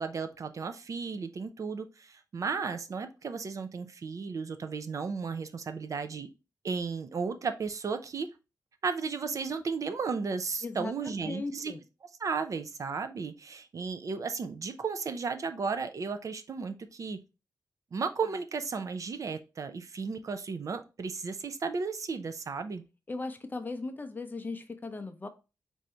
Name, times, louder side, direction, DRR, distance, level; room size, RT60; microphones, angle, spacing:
voice 1, 0.0-6.3 6.6-8.3 8.8-11.7 12.2-17.2 17.9-22.8, right 5 dB, 50° right, 0.4 m, -34 dB
voice 2, 10.6-11.8 23.1-25.3, left 3 dB, 25° left, 0.6 m, -38 dB
4.7 x 2.7 x 4.3 m
wide cardioid pair, 145°, 7 cm